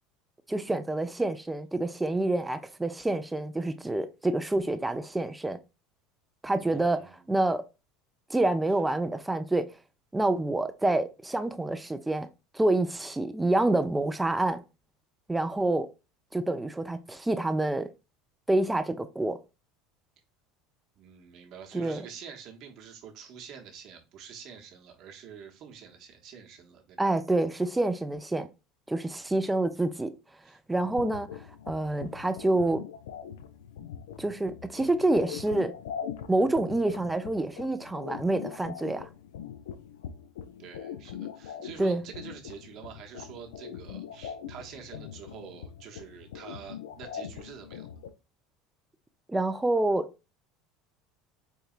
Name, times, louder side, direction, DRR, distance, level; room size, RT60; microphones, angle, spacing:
voice 1, 0.5-5.6 6.4-7.0 7.3-7.6 8.3-9.7 10.1-12.3 12.5-14.6 15.3-15.9 16.3-17.9 18.5-19.4 21.7-22.0 27.0-28.5 28.9-30.1 30.7-31.3 31.7-32.8 34.2-35.7 36.3-39.1 41.8-42.0 49.3-50.1, right 2 dB, 10° right, 0.4 m, -27 dB
voice 2, 6.6-7.4 8.7-8.8 20.9-27.0 30.4-30.6 40.6-47.9, right 7 dB, 55° right, 0.9 m, -47 dB
sound 1, 30.8-48.1, left 8 dB, 80° left, 0.3 m, -42 dB
4.5 x 2.7 x 2.4 m
hypercardioid pair, 80°, 0 cm